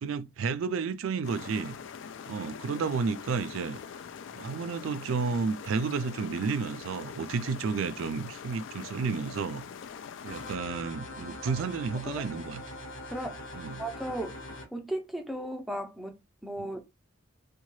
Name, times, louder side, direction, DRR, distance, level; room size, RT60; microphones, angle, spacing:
voice 1, 0.0-1.8 2.3-3.8 4.3-9.6 10.2-12.6 13.6-13.8 16.6-16.7, right 5 dB, 70° right, 0.4 m, -31 dB
sound 1, 1.2-10.6, left 7 dB, 60° left, 0.3 m, -44 dB
sound 2, 10.3-14.7, left 2 dB, 80° left, 1.1 m, -42 dB
voice 2, 12.1-12.4 13.1-13.4 13.8-14.4 14.7-16.2 16.4-16.8, right 1 dB, ahead, 0.5 m, -36 dB
2.8 x 2.2 x 3.0 m
head